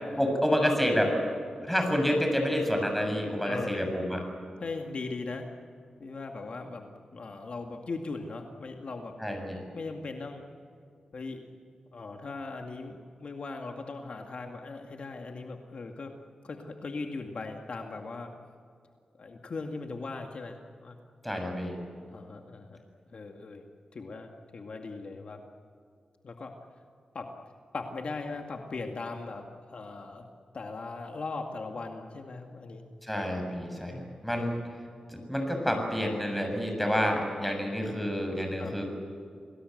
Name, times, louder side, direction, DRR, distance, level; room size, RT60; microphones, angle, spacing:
voice 1, 0.2-1.2 1.6-4.2 9.2-9.6 21.2-21.8 33.0-34.6 35.1-38.8, equal, 5° left, 3 dB, 7.2 m, -28 dB
voice 2, 3.4-3.9 4.6-5.5 6.0-9.1 9.7-10.4 11.1-11.5 11.9-16.1 16.4-18.3 19.2-21.0 22.1-22.8 23.1-23.6 23.9-25.4 26.2-26.5 27.1-27.3 27.7-30.3 30.5-32.8 34.4-34.6 38.6-38.7, left 3 dB, 60° left, 3 dB, 2.1 m, -39 dB
29.0 x 19.5 x 8.0 m, 2.4 s
wide cardioid pair, 80°, 2 cm